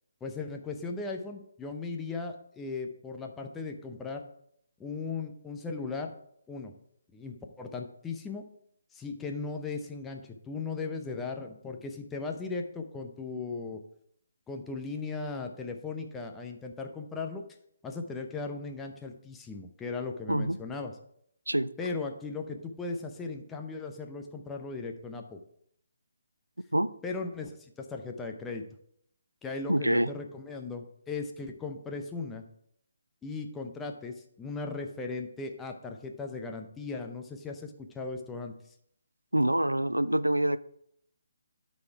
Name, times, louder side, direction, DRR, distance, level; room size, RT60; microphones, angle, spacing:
voice 1, 0.2-4.2 4.8-6.1 6.5-6.7 7.1-8.5 8.9-13.8 14.5-17.4 17.8-20.9 21.8-25.4 27.0-28.6 29.4-32.4 33.2-38.5, left 4 dB, 10° left, 3 dB, 0.7 m, -37 dB
voice 2, 29.7-30.1 39.3-40.6, right 1 dB, 85° right, 15 dB, 0.4 m, -26 dB
12.5 x 4.2 x 4.6 m, 0.71 s
figure-of-eight pair, 140°, 0 cm